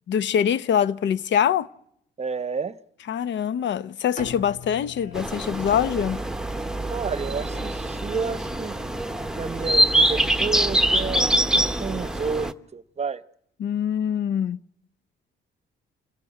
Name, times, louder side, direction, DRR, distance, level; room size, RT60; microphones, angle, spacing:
voice 1, 0.1-1.7 3.1-6.2 13.6-14.6, left 8 dB, 65° left, 0.8 m, -24 dB
voice 2, 2.2-2.8 6.9-8.8 9.3-13.2, right 5 dB, 35° right, 0.9 m, -30 dB
Bowed string instrument, 4.2-8.1, left 3 dB, 45° left, 6.6 m, -44 dB
sound 1, 4.3-6.5 6.8-10.7 11.0-11.1 11.4-11.9, left 3 dB, 80° left, 7.8 m, -51 dB
sound 2, 5.1-12.5, right 1 dB, 5° right, 1.0 m, -24 dB
26.5 x 15.0 x 9.8 m
cardioid pair, 90°, 20 cm